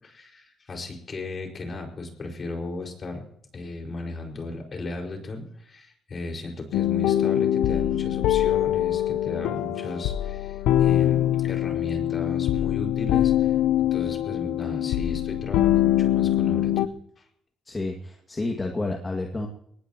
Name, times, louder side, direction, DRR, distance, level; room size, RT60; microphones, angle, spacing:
voice 1, 0.0-3.2 3.5-16.7, left 2 dB, 40° left, 2 dB, 5.4 m, -36 dB
sound 1, 6.7-16.9, left 12 dB, 90° left, 0.6 m, -23 dB
voice 2, 17.7-19.5, left 2 dB, 25° left, 2 dB, 2.3 m, -30 dB
22.5 x 19.5 x 3.1 m, 0.70 s
cardioid pair, 90°, 0 cm